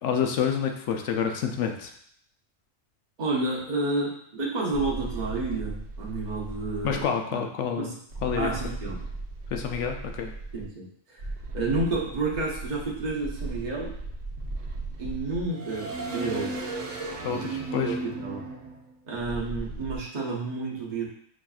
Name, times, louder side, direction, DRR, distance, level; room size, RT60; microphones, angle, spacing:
voice 1, 0.0-1.9 6.8-8.0 8.2-8.5 9.5-10.3 17.2-18.0, left 7 dB, 70° left, 4 dB, 0.8 m, -28 dB
voice 2, 3.2-7.0 7.3-7.4 7.8-7.9 8.3-9.0 10.5-10.9 11.1-11.2 11.5-13.9 15.0-16.6 17.2-18.5 19.1-21.0, right 3 dB, 40° right, -4 dB, 0.8 m, -30 dB
sound 1, 4.7-7.0 8.1-10.7 11.2-20.0, right 2 dB, 70° right, 1.0 m, -36 dB
6.2 x 2.6 x 2.3 m, 0.65 s
omnidirectional pair, 1.4 m